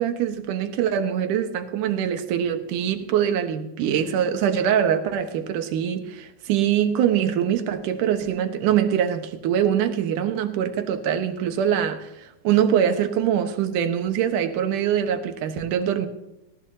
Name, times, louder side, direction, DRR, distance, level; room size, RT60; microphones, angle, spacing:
voice 1, 0.0-16.1, right 9 dB, 70° right, 7 dB, 2.7 m, -23 dB
19.0 x 18.0 x 2.8 m, 0.92 s
omnidirectional pair, 3.9 m